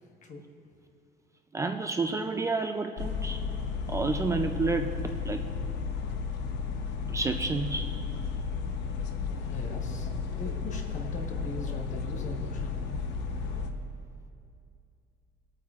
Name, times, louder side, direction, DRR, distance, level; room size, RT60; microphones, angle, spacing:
voice 1, 1.5-3.4 3.9-5.0 5.3-5.4 7.1-7.9, right 3 dB, 15° right, 6 dB, 0.4 m, -30 dB
sound 1, 3.0-13.7, left 5 dB, 80° left, 0.9 m, -33 dB
voice 2, 9.4-12.8, left 1 dB, 45° left, 2 dB, 1.3 m, -40 dB
22.5 x 8.7 x 2.4 m, 2.5 s
cardioid pair, 140°, 18 cm